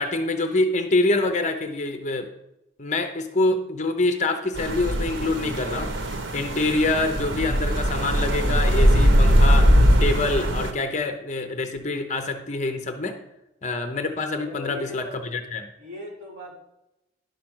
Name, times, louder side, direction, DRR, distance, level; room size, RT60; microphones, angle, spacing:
voice 1, 0.0-2.3 2.8-9.7 10.0-13.2 13.6-15.7, left 2 dB, 40° left, 7 dB, 0.8 m, -26 dB
sound 1, 4.5-10.7, equal, 80° right, 1.1 m, -20 dB
voice 2, 14.3-15.3 15.8-16.6, left 2 dB, 45° right, -5 dB, 3.7 m, -39 dB
11.0 x 5.1 x 6.1 m, 0.88 s
head